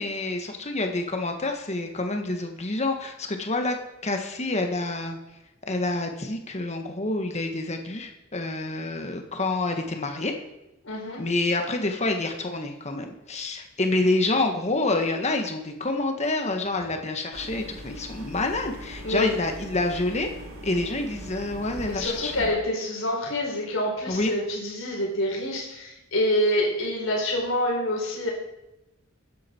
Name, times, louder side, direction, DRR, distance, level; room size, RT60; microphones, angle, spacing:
voice 1, 0.0-3.8 4.0-5.2 5.7-10.3 11.2-20.3 20.6-22.5 24.1-24.3, left 2 dB, 35° left, 4 dB, 1.7 m, -27 dB
voice 2, 10.8-11.2 19.0-19.3 21.8-28.3, left 1 dB, 70° left, -1 dB, 4.5 m, -26 dB
sound 1, 17.3-22.5, equal, 80° right, 2.1 m, -41 dB
15.0 x 10.5 x 4.6 m, 0.91 s
head